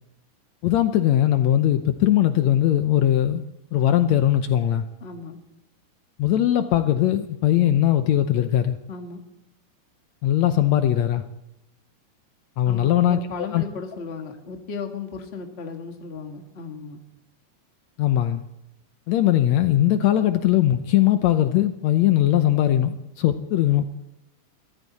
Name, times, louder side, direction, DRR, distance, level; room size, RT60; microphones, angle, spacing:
voice 1, 0.6-3.4 3.7-4.8 6.2-8.8 10.2-11.2 12.6-13.2 13.5-13.6 18.0-18.4 19.1-23.8, left 12 dB, 75° left, 9 dB, 1.8 m, -20 dB
voice 2, 5.0-5.4 8.9-9.2 12.7-17.0 23.3-23.4, left 5 dB, 30° left, 4 dB, 1.3 m, -36 dB
23.0 x 14.5 x 4.1 m, 0.87 s
omnidirectional pair, 3.6 m